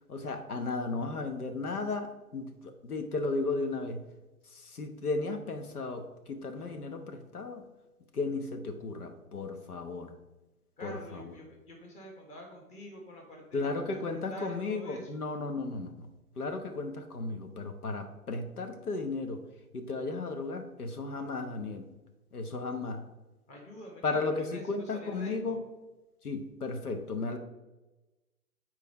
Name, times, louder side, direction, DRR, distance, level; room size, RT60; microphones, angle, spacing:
voice 1, 0.1-4.0 4.4-7.7 8.1-10.1 10.8-11.3 13.5-16.1 16.4-19.4 19.7-21.9 22.3-23.0 24.0-25.6 26.2-27.4, left 3 dB, 80° left, 6 dB, 1.1 m, -35 dB
voice 2, 10.8-15.1 23.5-25.6, equal, 15° left, 0 dB, 1.3 m, -46 dB
6.6 x 4.5 x 5.2 m, 1.1 s
figure-of-eight pair, 130°, 44 cm